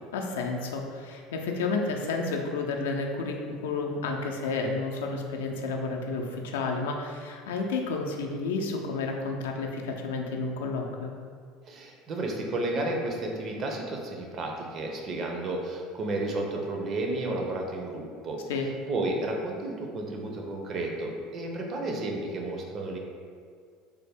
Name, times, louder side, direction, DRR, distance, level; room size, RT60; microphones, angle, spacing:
voice 1, 0.1-11.1 18.5-18.7, left 3 dB, 90° left, 1 dB, 0.4 m, -31 dB
voice 2, 11.7-18.4 18.9-23.0, right 2 dB, 45° right, 1 dB, 0.5 m, -32 dB
3.3 x 2.0 x 3.4 m, 2.1 s
supercardioid pair, 100°, 0 cm